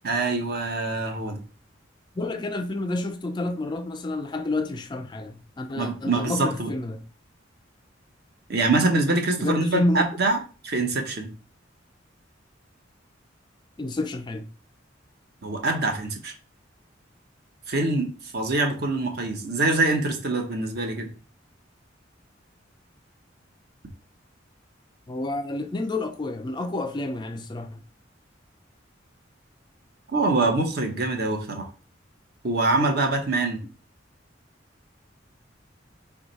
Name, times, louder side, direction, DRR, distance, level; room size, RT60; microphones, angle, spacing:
voice 1, 0.0-1.4 5.7-6.7 8.5-10.4 10.6-11.3 15.4-16.3 17.7-18.1 18.3-21.1 30.1-31.7 32.4-33.6, right 2 dB, 55° right, 0.9 m, -24 dB
voice 2, 2.2-7.0 9.4-10.0 13.8-14.5 25.1-27.8, left 2 dB, 25° left, 0.3 m, -29 dB
4.7 x 2.3 x 4.0 m
head